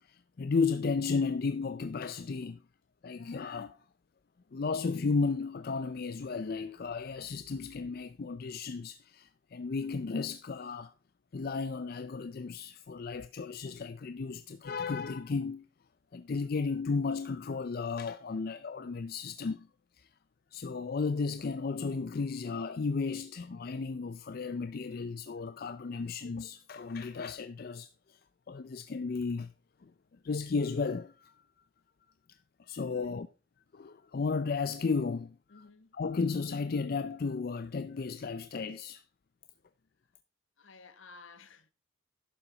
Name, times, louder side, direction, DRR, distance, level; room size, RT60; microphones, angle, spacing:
voice 1, 0.0-2.6 3.0-3.8 4.5-10.9 11.3-15.7 16.1-19.7 20.0-20.1 20.5-28.2 28.5-29.5 29.8-29.9 30.2-31.3 32.6-33.3 33.7-35.6 35.9-39.0, left 4 dB, 50° left, 0.4 m, -34 dB
voice 2, 32.9-33.2 35.5-35.9 40.6-41.7, left 4 dB, 80° left, 1.2 m, -54 dB
11.5 x 7.2 x 3.9 m
head